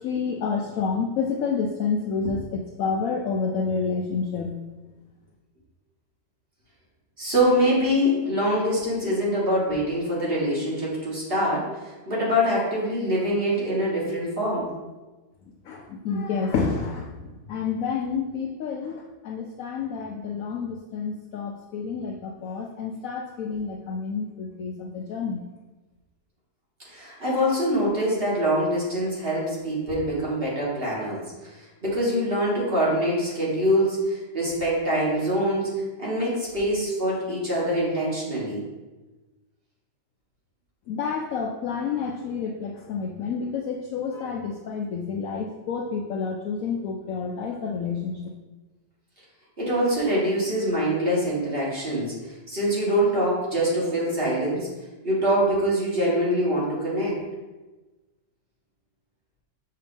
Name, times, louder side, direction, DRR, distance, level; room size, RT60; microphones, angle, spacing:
voice 1, 0.0-4.5 15.7-25.4 40.9-48.2, left 5 dB, 75° left, 1 dB, 0.7 m, -29 dB
voice 2, 7.2-14.7 26.8-38.6 49.6-54.7 55.0-57.2, equal, 30° right, -6 dB, 1.8 m, -24 dB
6.6 x 2.8 x 5.2 m, 1.2 s
omnidirectional pair, 2.0 m